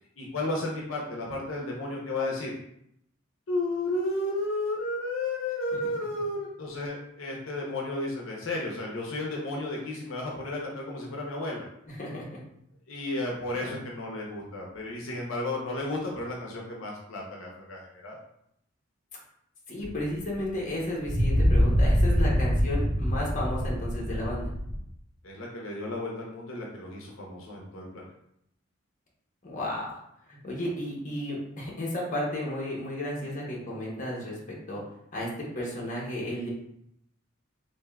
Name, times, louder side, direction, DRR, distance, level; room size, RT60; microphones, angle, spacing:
voice 1, 0.2-2.5 3.5-11.6 12.9-18.2 25.2-28.1, left 2 dB, 75° left, -2 dB, 0.6 m, -33 dB
voice 2, 11.9-12.3 13.6-13.8 19.7-24.5 29.4-30.0 30.3-34.4 34.7-34.8 35.1-35.3 35.5-36.5, left 1 dB, 40° left, -3 dB, 0.8 m, -33 dB
sound 1, 19.8-19.9 21.1-24.8, equal, 25° left, 1.3 m, -24 dB
3.4 x 2.6 x 2.2 m, 0.75 s
head